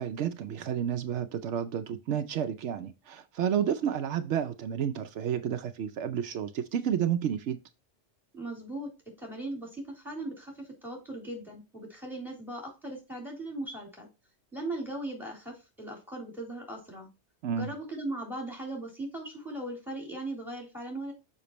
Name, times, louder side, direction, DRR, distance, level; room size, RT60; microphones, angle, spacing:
voice 1, 0.0-7.6 17.4-17.7, right 9 dB, 80° right, 0.9 m, -31 dB
voice 2, 8.3-8.9 9.2-14.1 14.5-17.1 17.5-21.1, right 1 dB, ahead, 3.5 m, -38 dB
6.9 x 5.8 x 3.0 m
omnidirectional pair, 1.2 m